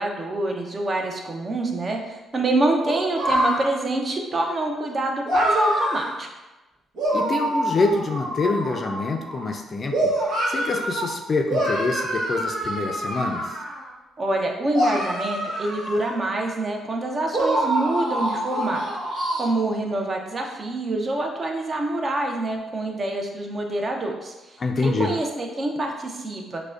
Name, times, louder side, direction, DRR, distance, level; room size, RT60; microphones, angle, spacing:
voice 1, 0.0-6.3 14.2-18.9 19.4-26.6, right 2 dB, 35° right, 2 dB, 0.6 m, -26 dB
sound 1, 2.8-3.6 5.2-6.1 7.0-9.5 9.9-11.1 11.5-13.9 14.7-16.6 17.3-19.5, right 1 dB, 80° right, 1.2 m, -25 dB
voice 2, 7.1-10.1 10.5-13.6 24.6-25.1, left 3 dB, 40° left, 4 dB, 0.4 m, -26 dB
4.8 x 2.1 x 2.4 m, 1.1 s
cardioid pair, 90°, 0 cm